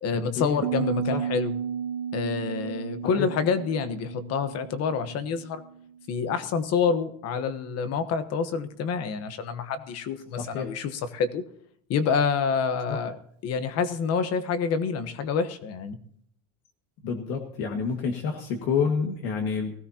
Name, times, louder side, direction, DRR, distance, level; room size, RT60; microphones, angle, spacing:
voice 1, 0.0-1.5 2.1-5.6 6.1-11.4 11.9-13.2 13.4-16.0, left 6 dB, 40° left, 11 dB, 1.2 m, -27 dB
Piano, 0.6-6.2, right 8 dB, 40° right, 1.0 m, -33 dB
voice 2, 10.4-10.7 12.9-13.0 17.0-19.7, left 6 dB, 70° left, 3 dB, 2.0 m, -28 dB
19.5 x 16.5 x 2.9 m, 0.66 s
cardioid pair, 175°, 37 cm